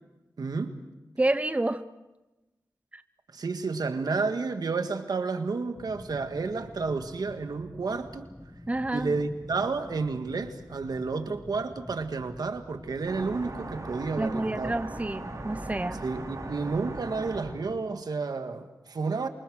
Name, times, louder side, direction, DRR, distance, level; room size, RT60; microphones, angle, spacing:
voice 1, 0.4-0.8 3.3-8.3 8.9-14.7 16.0-19.3, right 4 dB, 85° right, 7 dB, 1.8 m, -31 dB
voice 2, 1.2-1.8 2.9-3.0 8.7-9.1 14.2-16.0, right 2 dB, 20° right, 11 dB, 0.9 m, -29 dB
sound 1, 5.7-17.8, left 1 dB, 10° left, 1.4 m, -47 dB
sound 2, 13.0-17.4, right 2 dB, 55° right, 6.0 m, -39 dB
28.0 x 24.0 x 6.4 m, 1.1 s
wide cardioid pair, 70°, 7 cm